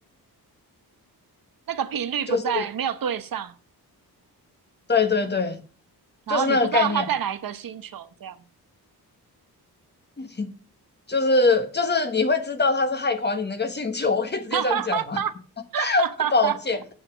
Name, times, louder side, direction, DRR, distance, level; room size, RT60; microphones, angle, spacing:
voice 1, 1.7-3.5 6.3-8.4 14.5-15.3 15.7-16.6, right 9 dB, 60° right, 0.9 m, -27 dB
voice 2, 2.3-2.6 4.9-5.6 6.3-7.0 10.2-10.5 11.1-15.2 15.8-16.0 16.3-16.8, left 3 dB, 25° left, 1.1 m, -23 dB
8.0 x 6.5 x 6.8 m
wide cardioid pair, 145°, 38 cm